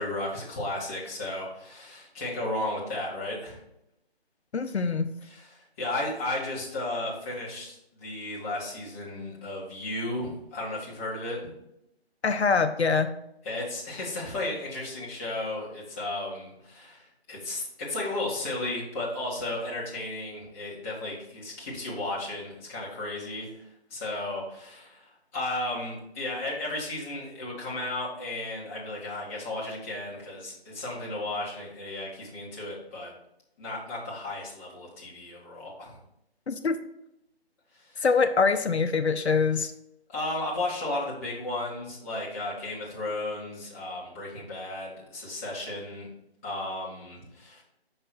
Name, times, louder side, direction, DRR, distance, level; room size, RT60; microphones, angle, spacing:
voice 1, 0.0-3.6 5.3-11.4 13.4-23.6 23.9-33.1 33.6-35.9 37.7-38.0 40.1-46.1 46.4-47.6, left 2 dB, 15° left, -5 dB, 1.2 m, -34 dB
voice 2, 4.5-5.1 12.2-13.1 36.5-36.8 38.0-39.7, left 5 dB, 80° left, 8 dB, 0.7 m, -24 dB
5.7 x 5.5 x 4.2 m, 0.81 s
figure-of-eight pair, 155°, 32 cm